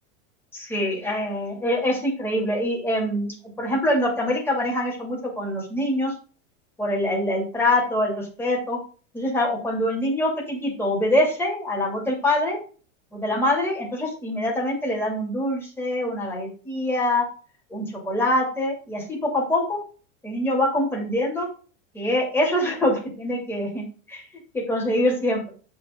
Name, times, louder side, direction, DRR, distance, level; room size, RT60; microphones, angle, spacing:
voice 1, 0.5-6.1 6.8-8.8 9.1-12.6 13.1-17.3 17.7-19.8 20.2-21.5 21.9-24.2 24.5-25.5, left 1 dB, 5° left, -2 dB, 2.6 m, -24 dB
8.1 x 4.9 x 3.7 m, 0.38 s
supercardioid pair, 145°, 37 cm